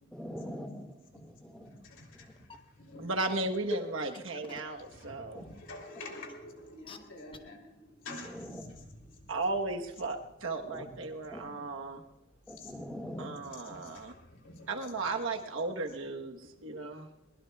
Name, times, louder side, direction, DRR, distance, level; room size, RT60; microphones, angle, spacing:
voice 1, 0.1-0.9 1.1-1.7 2.2-2.3 5.3-5.4 8.2-8.6 10.7-10.8 11.3-11.4 12.5-13.4, equal, 5° left, 2 dB, 1.9 m, -42 dB
voice 2, 1.6-3.1 4.8-9.3 11.6-11.7 12.6-12.7 13.0-13.4 13.6-15.1 15.6-15.7, left 2 dB, 75° left, 1 dB, 3.4 m, -49 dB
sound 1, 2.4-2.5 3.2-3.6 4.1-4.7 5.3-5.4 6.2-6.3 6.9-7.0 7.3-7.4, left 4 dB, 25° left, 0.9 m, -47 dB
voice 3, 3.0-5.5 9.3-12.0 13.2-14.1 14.7-17.1, right 3 dB, 90° right, 3 dB, 1.2 m, -35 dB
21.5 x 21.0 x 2.4 m, 0.90 s
head